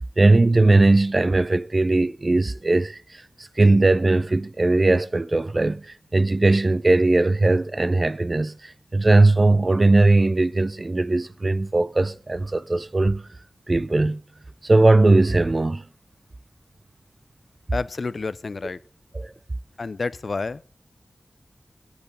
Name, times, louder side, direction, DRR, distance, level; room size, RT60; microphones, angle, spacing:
voice 1, 0.0-5.9 6.1-13.2 13.7-14.2 14.6-15.8 19.1-19.3, right 2 dB, 45° right, 0.7 m, -19 dB
voice 2, 17.7-18.8 19.8-20.6, left 3 dB, 65° left, 0.5 m, -29 dB
8.6 x 8.4 x 6.9 m
cardioid pair, 40°, 0 cm